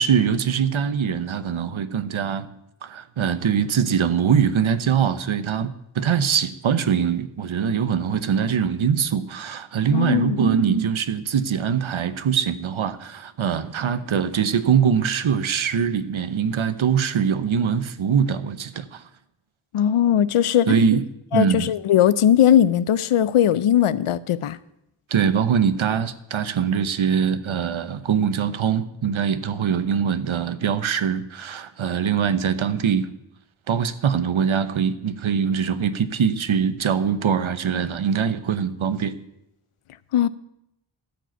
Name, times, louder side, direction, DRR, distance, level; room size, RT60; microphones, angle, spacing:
voice 1, 0.0-2.5 2.8-19.0 20.7-21.0 21.3-21.7 25.1-33.1 33.7-39.1, right 7 dB, 70° right, 0.9 m, -22 dB
voice 2, 9.9-10.4 19.7-20.7 21.3-24.6 40.1-40.3, left 10 dB, 90° left, 0.6 m, -19 dB
13.5 x 5.0 x 9.1 m
cardioid pair, 45°, 49 cm